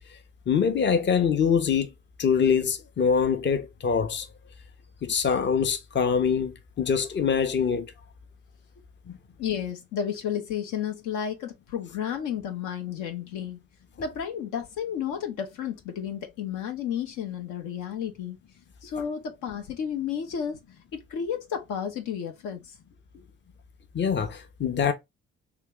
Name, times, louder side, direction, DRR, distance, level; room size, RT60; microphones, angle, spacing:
voice 1, 0.5-1.9 2.2-4.3 5.0-7.9 9.1-9.2 23.9-24.9, left 6 dB, 35° left, 0.7 m, -24 dB
voice 2, 9.4-13.6 14.0-18.4 18.8-20.6 20.9-22.7 23.1-23.2, left 8 dB, 70° left, 0.7 m, -32 dB
2.8 x 2.3 x 3.5 m
hypercardioid pair, 45°, 31 cm